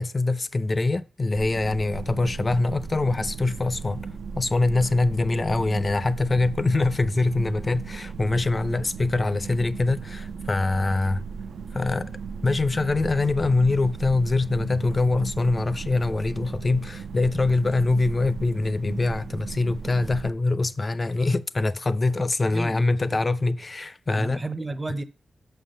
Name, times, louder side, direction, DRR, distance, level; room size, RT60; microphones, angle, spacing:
voice 1, 0.0-4.1 4.3-11.2 11.7-24.4, left 3 dB, 30° left, 0.5 m, -24 dB
sound 1, 1.3-20.3, right 5 dB, 80° right, 0.7 m, -37 dB
voice 2, 22.5-23.2 24.2-25.0, right 2 dB, 20° right, 0.7 m, -33 dB
6.3 x 5.7 x 6.4 m
wide cardioid pair, 105°, 0 cm